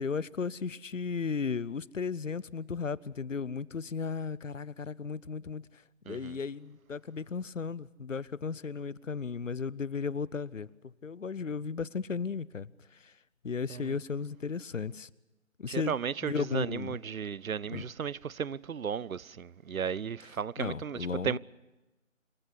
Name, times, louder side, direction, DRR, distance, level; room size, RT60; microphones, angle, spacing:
voice 1, 0.0-10.7 11.0-12.7 13.0-13.1 13.4-15.1 15.6-16.0 16.2-17.0 17.7-17.9 20.6-21.4, left 5 dB, 65° left, 0.7 m, -35 dB
voice 2, 6.1-6.4 13.7-13.9 15.7-21.4, right 7 dB, 85° right, 0.6 m, -35 dB
26.5 x 14.5 x 8.2 m
figure-of-eight pair, 175°, 41 cm